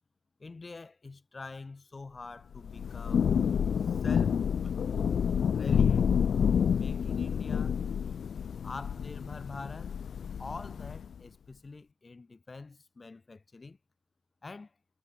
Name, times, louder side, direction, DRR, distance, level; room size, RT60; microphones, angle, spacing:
voice 1, 0.4-3.2 3.8-4.7 5.5-6.1 6.7-7.8 8.6-10.0 10.4-13.8 14.4-14.7, left 3 dB, 20° left, 1.7 m, -45 dB
Thunder / Rain, 2.5-11.1, left 7 dB, 50° left, 0.3 m, -29 dB
cardioid pair, 135°, 0 cm